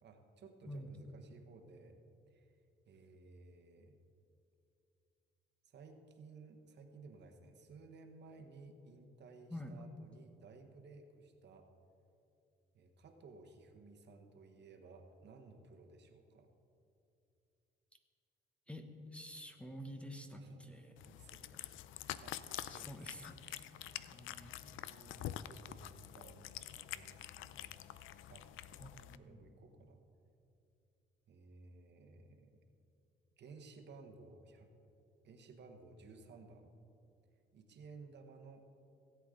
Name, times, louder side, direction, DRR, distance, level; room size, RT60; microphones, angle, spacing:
voice 1, 0.0-2.0 2.3-2.6 2.8-4.0 5.6-11.7 12.7-16.5 20.3-21.6 22.0-23.0 23.4-24.1 24.6-27.8 28.3-28.5 29.0-30.0 31.3-32.6 33.4-34.7 35.2-36.7 37.5-38.7, right 3 dB, 60° right, 5 dB, 1.3 m, -57 dB
voice 2, 9.5-9.8 18.7-20.9 22.7-23.5 24.1-24.6 28.8-29.5, equal, 5° left, 5 dB, 1.0 m, -49 dB
Cat, 21.0-29.2, left 12 dB, 80° left, 0.4 m, -47 dB
17.5 x 8.2 x 3.8 m, 2.7 s
cardioid pair, 90°, 20 cm